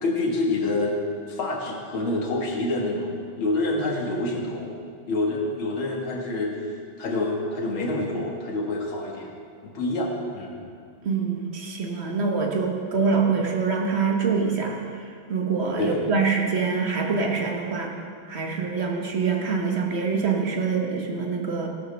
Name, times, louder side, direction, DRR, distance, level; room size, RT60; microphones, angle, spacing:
voice 1, 0.0-1.0 1.3-4.7 5.1-6.7 7.0-9.3 9.6-10.6 15.8-16.0, left 2 dB, 80° left, -2 dB, 2.6 m, -27 dB
voice 2, 11.0-14.8 15.3-18.0 18.3-21.7, right 5 dB, 35° right, 1 dB, 1.4 m, -25 dB
17.5 x 11.5 x 3.4 m, 2.2 s
omnidirectional pair, 2.2 m